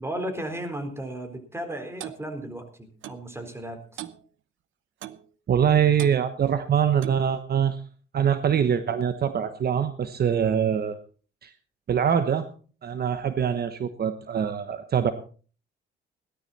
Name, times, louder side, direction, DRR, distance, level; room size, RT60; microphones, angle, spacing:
voice 1, 0.0-4.0, right 1 dB, 10° right, 8 dB, 4.1 m, -35 dB
Clock, 2.0-2.2 3.0-3.2 4.0-4.2 5.0-5.3 6.0-6.2 7.0-7.3, right 12 dB, 75° right, 0.9 m, -38 dB
voice 2, 5.5-7.8 8.1-11.0 11.4-11.5 11.9-12.4 12.8-15.1, right 8 dB, 55° right, 10 dB, 1.2 m, -23 dB
17.5 x 12.5 x 4.2 m, 0.40 s
cardioid pair, 90°, 20 cm